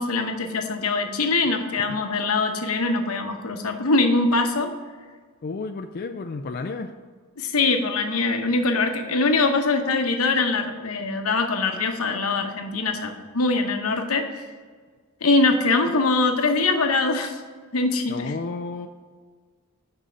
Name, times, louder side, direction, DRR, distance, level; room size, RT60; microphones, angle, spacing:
voice 1, 0.0-4.7 7.4-14.3 15.2-17.4 17.7-18.3, left 3 dB, 85° left, 5 dB, 0.9 m, -23 dB
voice 2, 5.4-6.9 18.1-18.9, left 3 dB, 45° left, 6 dB, 0.4 m, -32 dB
6.2 x 5.5 x 6.7 m, 1.5 s
head